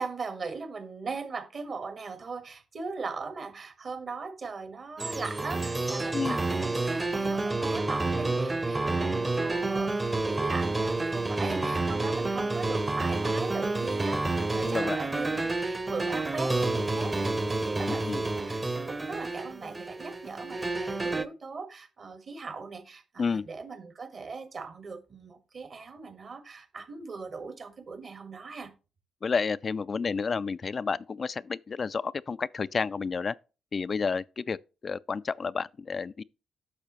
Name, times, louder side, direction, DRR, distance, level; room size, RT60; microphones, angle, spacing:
voice 1, 0.0-9.9 10.2-28.7, right 4 dB, 50° right, 1.6 m, -39 dB
sound 1, 5.0-21.3, right 2 dB, 25° right, 0.9 m, -29 dB
voice 2, 14.6-15.0 17.9-18.2 23.2-23.5 29.2-33.4 33.7-34.6 34.8-36.2, left 5 dB, 45° left, 0.3 m, -30 dB
9.8 x 6.5 x 3.0 m
hypercardioid pair, 45°, 0 cm